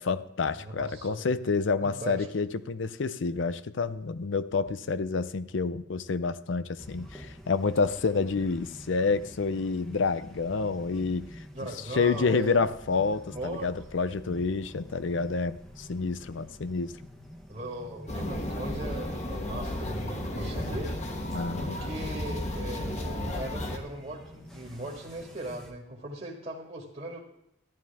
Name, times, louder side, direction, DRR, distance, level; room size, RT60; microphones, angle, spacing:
voice 1, 0.0-11.3 11.9-16.9 21.3-21.8, left 4 dB, 80° left, 14 dB, 0.6 m, -28 dB
voice 2, 0.6-1.3 1.8-2.3 11.5-12.6 13.3-13.7 14.1-14.2 17.5-20.9 21.6-27.2, right 1 dB, 35° right, -4 dB, 1.8 m, -38 dB
sound 1, 6.8-25.7, equal, 5° left, 1.1 m, -48 dB
sound 2, 18.1-23.8, left 1 dB, 35° left, 1.4 m, -33 dB
13.5 x 11.0 x 3.5 m, 0.79 s
head